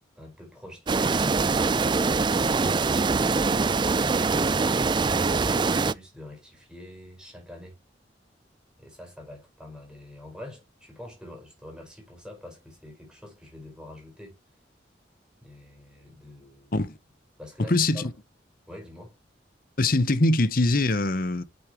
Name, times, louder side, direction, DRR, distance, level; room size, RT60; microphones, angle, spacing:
voice 1, 0.1-2.5 3.3-7.8 8.8-14.4 15.4-16.7 17.4-18.1 18.7-19.2, left 1 dB, 5° right, 5.0 m, -45 dB
sound 1, 0.9-5.9, right 4 dB, 25° right, 0.4 m, -23 dB
voice 2, 17.7-18.1 19.8-21.4, left 2 dB, 50° left, 0.9 m, -23 dB
8.1 x 7.3 x 3.0 m
head